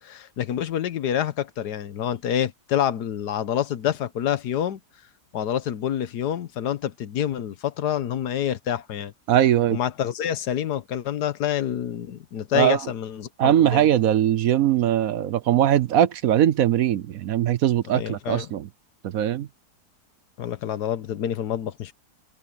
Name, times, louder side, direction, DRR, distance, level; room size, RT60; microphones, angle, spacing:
voice 1, 0.0-4.8 5.3-9.1 9.7-13.9 17.9-18.5 20.4-21.9, left 10 dB, 80° left, 1.5 m, -27 dB
voice 2, 9.3-9.8 12.5-12.8 13.4-18.7 19.0-19.5, right 11 dB, 65° right, 1.0 m, -20 dB
omnidirectional pair, 1.8 m